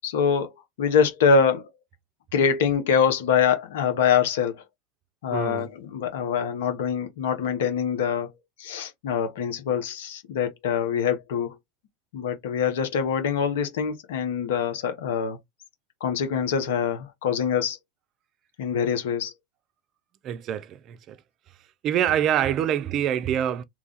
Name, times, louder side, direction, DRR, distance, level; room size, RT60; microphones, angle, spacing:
voice 1, 0.0-0.5 0.8-1.7 2.3-4.6 5.2-8.3 8.6-11.6 12.1-15.4 16.0-17.8 18.6-19.3, left 6 dB, 75° left, 0.9 m, -24 dB
voice 2, 5.3-5.7 20.2-21.2 21.8-23.6, right 10 dB, 40° right, 0.4 m, -25 dB
3.1 x 2.4 x 3.8 m
hypercardioid pair, 100°, 0 cm